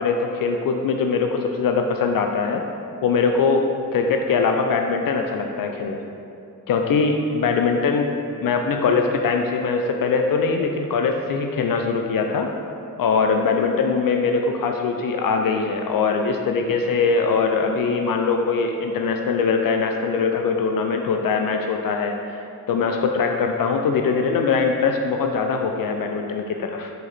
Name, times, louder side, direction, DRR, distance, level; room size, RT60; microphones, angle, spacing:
voice 1, 0.0-2.6 3.0-6.0 6.7-8.1 8.4-12.5 13.0-22.4 22.7-26.9, left 5 dB, 50° left, 4 dB, 0.7 m, -22 dB
6.5 x 5.0 x 4.4 m, 2.6 s
hypercardioid pair, 45°, 44 cm